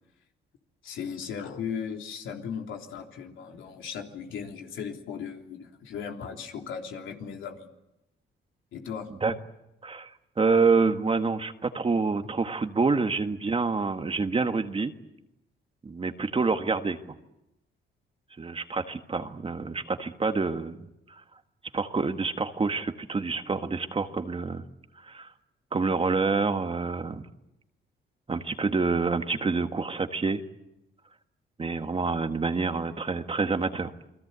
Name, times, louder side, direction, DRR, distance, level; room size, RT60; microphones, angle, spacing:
voice 1, 0.8-7.7 8.7-9.1, left 7 dB, 75° left, 2 dB, 3.5 m, -37 dB
voice 2, 10.4-14.9 15.8-17.0 18.4-20.8 21.7-24.6 25.0-25.3 25.7-27.2 28.3-30.4 31.6-33.9, right 4 dB, 30° right, 7 dB, 1.6 m, -27 dB
28.5 x 21.5 x 8.2 m, 0.90 s
cardioid pair, 90°, 20 cm